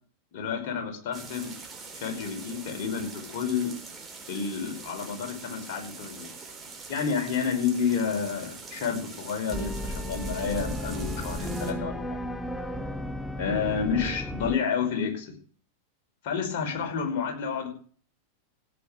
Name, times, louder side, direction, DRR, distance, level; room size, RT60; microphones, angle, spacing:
voice 1, 0.3-1.5 2.0-3.7 4.3-6.3 6.9-12.3 13.4-15.3 16.2-17.7, left 6 dB, 50° left, 3 dB, 5.2 m, -30 dB
sound 1, 1.1-11.7, right 4 dB, 15° right, 4.0 m, -44 dB
sound 2, 9.5-14.6, equal, 5° left, 1.1 m, -34 dB
16.5 x 8.5 x 6.7 m, 0.43 s
figure-of-eight pair, 90°, 0 cm